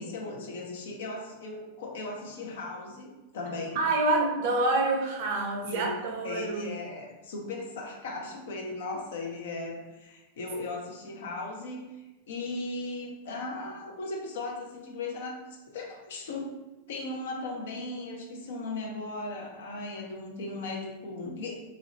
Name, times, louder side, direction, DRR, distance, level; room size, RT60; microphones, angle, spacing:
voice 1, 0.0-3.8 5.6-6.0 6.2-11.9 12.3-15.4 15.7-16.5 16.9-21.5, left 2 dB, 60° left, 0 dB, 0.6 m, -37 dB
voice 2, 3.8-6.7, right 2 dB, 50° right, 2 dB, 0.5 m, -27 dB
3.1 x 2.5 x 2.8 m, 1.1 s
figure-of-eight pair, 90°, 0 cm